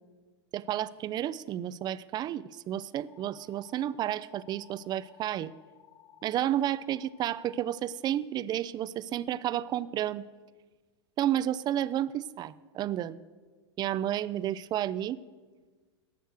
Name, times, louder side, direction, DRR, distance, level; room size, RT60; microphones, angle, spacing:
voice 1, 0.5-5.5 6.2-10.3 11.2-13.2 13.8-15.2, right 11 dB, 30° right, 18 dB, 0.4 m, -31 dB
sound 1, 3.1-7.9, left 11 dB, 40° left, 1.4 m, -58 dB
12.5 x 7.9 x 6.4 m, 1.4 s
hypercardioid pair, 95°, 15 cm